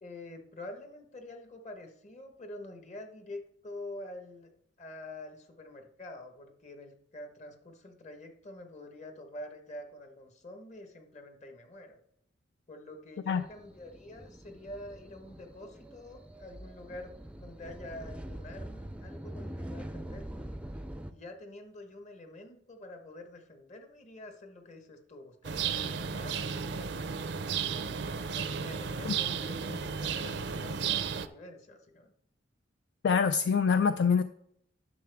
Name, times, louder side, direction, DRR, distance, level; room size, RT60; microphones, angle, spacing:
voice 1, 0.0-4.5 4.8-12.0 12.7-20.5 21.1-27.3 28.1-32.1, left 1 dB, 40° left, 5 dB, 1.2 m, -47 dB
sound 1, 13.4-21.1, right 1 dB, 5° right, 0.5 m, -44 dB
sound 2, 25.4-31.3, right 6 dB, 70° right, 0.5 m, -33 dB
voice 2, 33.0-34.2, left 6 dB, 65° left, 10 dB, 0.4 m, -25 dB
10.5 x 6.7 x 3.5 m, 0.72 s
head